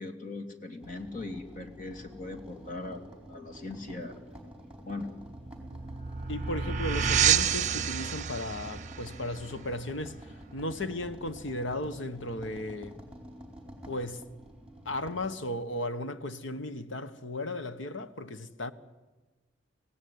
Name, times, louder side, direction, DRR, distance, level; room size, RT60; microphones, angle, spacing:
voice 1, 0.0-4.2 4.8-5.1, left 2 dB, 45° left, 2.7 m, -40 dB
sound 1, 0.8-15.3, equal, 5° right, 4.6 m, -49 dB
sound 2, 5.3-10.6, right 8 dB, 40° right, 0.8 m, -30 dB
voice 2, 6.3-13.0 13.9-14.2 14.8-18.7, left 1 dB, 80° left, 1.3 m, -35 dB
25.0 x 17.5 x 9.6 m
head